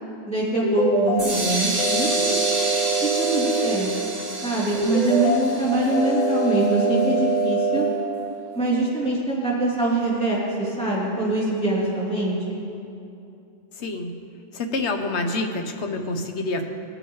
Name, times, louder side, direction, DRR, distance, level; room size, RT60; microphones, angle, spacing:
voice 1, 0.3-2.4 3.2-3.9 4.4-7.9 8.5-12.6, right 2 dB, 5° left, -8 dB, 2.9 m, -24 dB
sound 1, 0.6-1.2 1.8-3.8 4.8-5.4 5.9-7.9, right 3 dB, 35° left, 2.3 m, -23 dB
sound 2, 1.2-7.0, right 2 dB, 55° right, 2.7 m, -29 dB
voice 2, 13.8-14.1 14.5-16.6, left 2 dB, 65° left, 5 dB, 1.2 m, -27 dB
18.5 x 9.0 x 3.1 m, 2.7 s
omnidirectional pair, 1.3 m